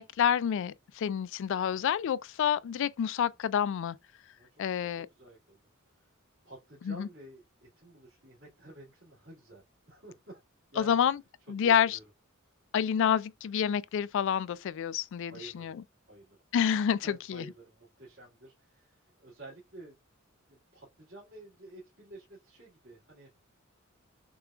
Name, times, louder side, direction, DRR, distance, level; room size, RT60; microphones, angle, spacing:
voice 1, 0.0-4.0 4.6-5.1 6.9-7.1 10.8-11.2 11.5-12.0 12.7-15.8 16.5-17.4, left 8 dB, 60° left, 0.3 m, -28 dB
voice 2, 4.4-5.6 5.9-6.1 6.4-10.4 10.7-11.0 11.6-12.0 15.3-15.7 16.1-16.4 17.0-20.0 20.5-23.3, right 2 dB, 65° right, 2.0 m, -51 dB
6.7 x 2.3 x 2.3 m
head